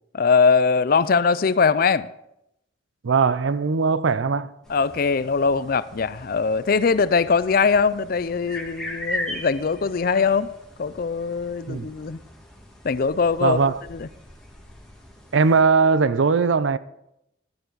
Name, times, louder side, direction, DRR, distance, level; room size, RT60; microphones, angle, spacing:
voice 1, 0.1-2.1 4.7-10.5 10.8-12.2 12.8-13.6 13.9-14.1, left 5 dB, 50° left, 0.4 m, -21 dB
voice 2, 3.0-4.5 11.7-11.9 13.4-13.8 15.3-16.8, right 5 dB, 80° right, 0.5 m, -20 dB
sound 1, 4.6-15.6, left 1 dB, 5° left, 2.0 m, -39 dB
12.5 x 11.0 x 4.0 m
head